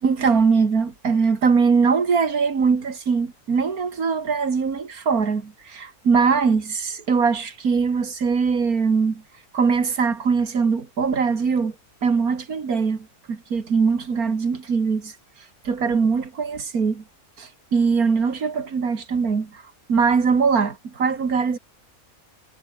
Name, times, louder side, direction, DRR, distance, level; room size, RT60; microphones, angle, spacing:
voice 1, 0.0-9.2 9.5-11.7 12.0-15.1 15.6-17.0 17.4-19.6 19.9-21.6, right 5 dB, 80° right, 2.7 m, -21 dB
omnidirectional pair, 1.5 m